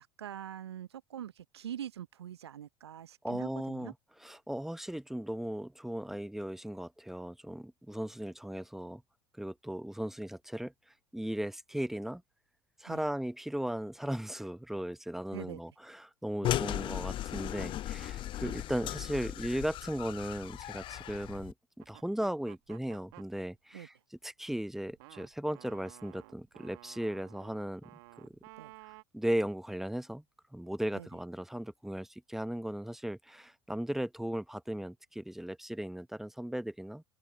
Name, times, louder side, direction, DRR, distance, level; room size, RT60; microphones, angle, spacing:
voice 1, 0.0-3.9 12.9-13.0 15.3-15.6 16.4-16.6 18.4-18.6 23.7-23.9 28.6-28.7 30.9-31.1, right 10 dB, 75° right, 0.8 m, -44 dB
voice 2, 3.2-3.9 4.2-9.0 9.4-10.7 11.1-12.2 12.8-23.9 24.2-27.9 28.2-28.3 28.8-30.2 30.5-37.0, right 1 dB, ahead, 1.0 m, -37 dB
sound 1, 16.4-21.5, left 13 dB, 35° left, 0.7 m, -36 dB
sound 2, 21.8-23.3 24.5-29.0, right 25 dB, 60° right, 1.7 m, -54 dB
figure-of-eight pair, 75°, 14 cm